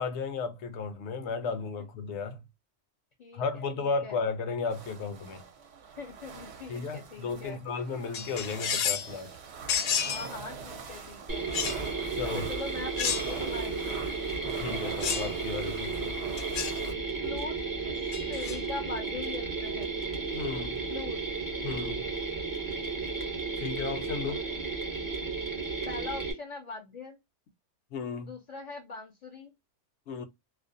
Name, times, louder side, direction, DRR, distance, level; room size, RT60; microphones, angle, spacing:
voice 1, 0.0-2.4 3.3-5.4 6.7-9.3 12.1-12.4 14.4-16.1 19.7-19.8 20.3-20.8 21.6-22.0 23.6-24.4 27.9-28.3 30.1-30.2, left 4 dB, 70° left, 0.8 m, -34 dB
voice 2, 3.2-4.2 6.0-7.6 10.0-11.5 12.2-14.0 17.2-20.0 20.9-21.2 24.3-24.6 25.9-27.2 28.3-29.5, left 4 dB, 50° left, 0.5 m, -42 dB
sound 1, 4.7-16.9, right 6 dB, 65° right, 0.8 m, -44 dB
sound 2, 8.1-9.1 9.7-10.3 11.5-11.8 13.0-13.5 15.0-15.3 16.4-16.8 18.1-18.6, left 7 dB, 90° left, 1.0 m, -31 dB
Mechanisms, 11.3-26.3, right 4 dB, 25° right, 0.5 m, -33 dB
2.4 x 2.0 x 2.5 m
omnidirectional pair, 1.3 m